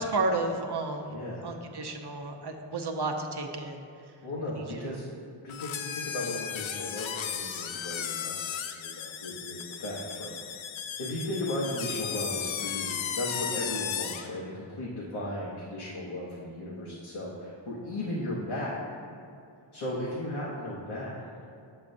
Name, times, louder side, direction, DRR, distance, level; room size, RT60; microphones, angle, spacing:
voice 1, 0.0-1.2 1.4-3.9 4.5-5.0, right 2 dB, 50° right, 3 dB, 0.8 m, -32 dB
voice 2, 1.1-1.6 4.2-10.6 11.0-18.8 19.7-21.4, left 1 dB, 90° left, -6 dB, 1.0 m, -36 dB
sound 1, 5.5-14.3, left 8 dB, 70° left, 0.5 m, -35 dB
7.3 x 6.9 x 2.6 m, 2.6 s
cardioid pair, 40°, 50 cm